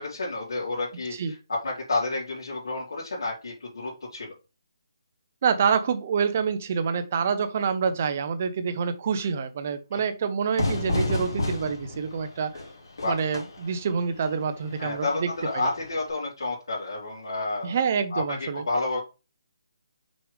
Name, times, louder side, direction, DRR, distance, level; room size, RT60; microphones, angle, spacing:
voice 1, 0.0-4.3 9.9-10.0 13.0-13.1 14.8-17.7 18.1-19.0, left 2 dB, 75° left, 3.4 m, -30 dB
voice 2, 5.4-12.6 13.0-15.3 15.5-15.7 17.6-18.6, right 6 dB, 25° right, 0.6 m, -27 dB
Fire / Fireworks, 10.6-16.1, left 2 dB, 55° left, 3.2 m, -32 dB
6.2 x 4.7 x 3.4 m
hypercardioid pair, 180°, 2 cm